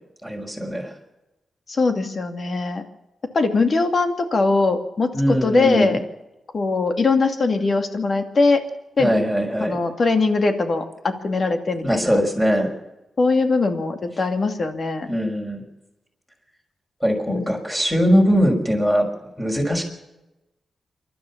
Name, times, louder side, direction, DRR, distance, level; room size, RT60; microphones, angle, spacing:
voice 1, 0.2-0.9 5.1-6.0 9.0-9.8 11.8-12.7 15.1-15.6 17.0-19.1 19.4-19.8, equal, 5° left, 1 dB, 5.9 m, -21 dB
voice 2, 1.7-2.8 3.3-6.0 6.5-8.6 9.0-9.1 9.6-12.2 13.2-15.1 17.3-17.4, left 3 dB, 50° left, 6 dB, 2.5 m, -21 dB
27.5 x 12.5 x 7.5 m, 0.99 s
cardioid pair, 100°, 0 cm